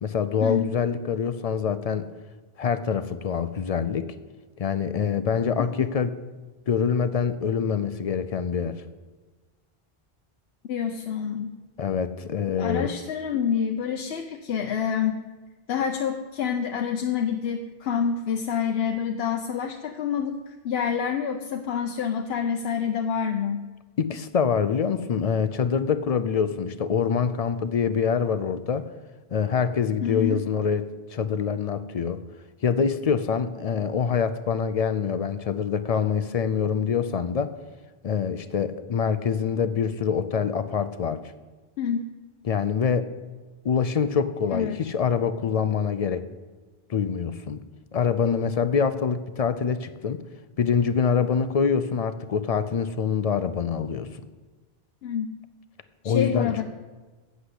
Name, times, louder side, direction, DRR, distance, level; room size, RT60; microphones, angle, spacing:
voice 1, 0.0-2.1 2.6-4.1 4.6-6.1 6.7-8.8 11.8-12.9 24.0-28.9 29.3-32.2 32.6-37.5 38.0-41.2 42.4-43.1 43.6-46.3 46.9-47.6 47.9-50.2 50.6-54.1 56.0-56.6, left 6 dB, 50° left, 12 dB, 0.4 m, -25 dB
voice 2, 10.7-11.5 12.6-15.2 15.7-23.6 30.0-30.4 41.8-42.0 44.5-44.8 55.0-55.3 56.0-56.6, left 7 dB, 80° left, 5 dB, 0.8 m, -27 dB
8.1 x 6.6 x 7.9 m, 1.3 s
omnidirectional pair, 1.0 m